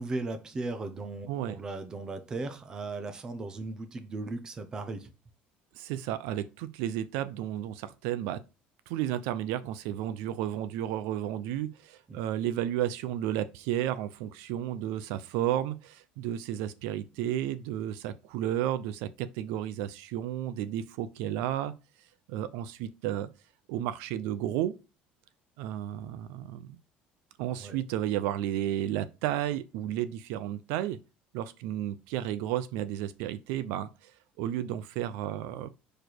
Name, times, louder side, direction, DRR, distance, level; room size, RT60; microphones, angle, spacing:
voice 1, 0.0-5.1 12.1-12.2 27.6-27.8, right 3 dB, 20° right, 0.7 m, -37 dB
voice 2, 5.7-8.4 8.9-21.7 22.3-23.3 23.7-24.7 25.6-26.8 27.4-31.0 31.3-34.1 34.4-35.7, right 12 dB, 90° right, 0.6 m, -32 dB
5.0 x 4.3 x 4.5 m
cardioid pair, 180°, 4 cm